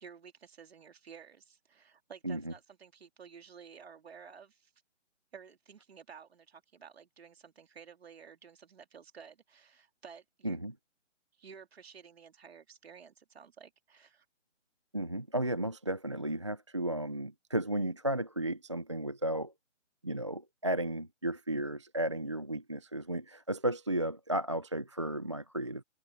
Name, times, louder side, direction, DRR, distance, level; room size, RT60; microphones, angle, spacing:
voice 1, 0.0-4.7 5.3-10.6 11.3-14.2, right 6 dB, 55° right, 2.9 m, -53 dB
voice 2, 14.9-19.5 20.0-25.8, right 1 dB, 25° right, 0.5 m, -34 dB
open air
hypercardioid pair, 165°, 37 cm